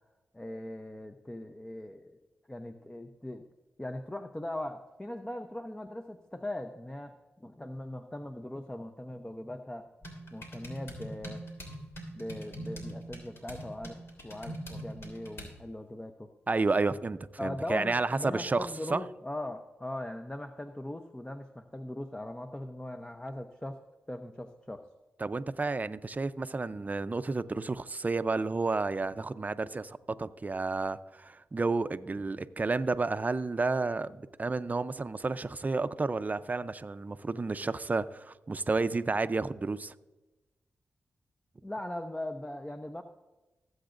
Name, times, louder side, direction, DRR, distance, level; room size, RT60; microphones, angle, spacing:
voice 1, 0.3-2.2 2.5-3.4 3.8-9.9 10.3-11.4 12.1-14.0 14.2-16.3 17.4-23.8 24.1-24.8 41.6-43.0, left 1 dB, 15° left, 0.8 m, -40 dB
sound 1, 10.0-15.6, right 1 dB, 60° left, 2.9 m, -43 dB
voice 2, 16.5-19.0 25.2-39.9, right 3 dB, 35° right, 0.6 m, -31 dB
19.0 x 7.9 x 2.6 m
cardioid pair, 45°, 5 cm